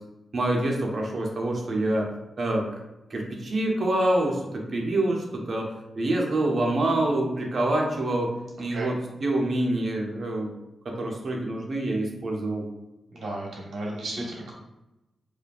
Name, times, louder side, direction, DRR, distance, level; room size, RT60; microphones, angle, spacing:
voice 1, 0.3-2.1 2.4-2.8 3.1-8.3 8.6-10.5 10.8-12.6, right 1 dB, 55° right, 0 dB, 0.9 m, -26 dB
voice 2, 8.6-8.9 13.1-14.5, right 1 dB, 75° right, -3 dB, 1.2 m, -34 dB
4.8 x 2.6 x 2.4 m, 0.94 s
cardioid pair, 70°, 0 cm